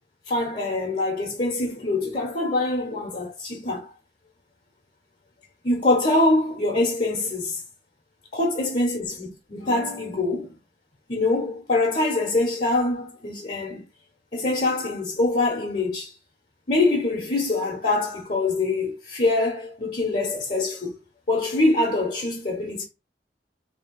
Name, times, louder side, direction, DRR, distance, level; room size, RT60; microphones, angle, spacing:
voice 1, 0.3-3.9 5.6-7.6 8.3-10.6 11.1-13.8 14.3-16.1 16.7-21.0 21.3-22.8, left 2 dB, 40° left, 0.9 m, -24 dB
3.1 x 2.8 x 4.5 m
head